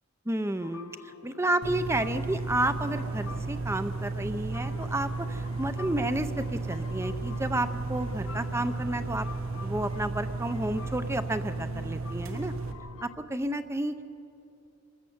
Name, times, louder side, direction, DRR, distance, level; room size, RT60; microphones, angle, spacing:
voice 1, 0.3-0.9 1.2-9.3 9.6-12.5 13.0-14.0, right 1 dB, 15° right, 10 dB, 0.7 m, -31 dB
sound 1, 0.6-13.1, left 5 dB, 80° left, 0.8 m, -48 dB
sound 2, 1.6-12.7, right 3 dB, 85° right, 1.4 m, -34 dB
26.0 x 14.0 x 7.9 m, 2.8 s
head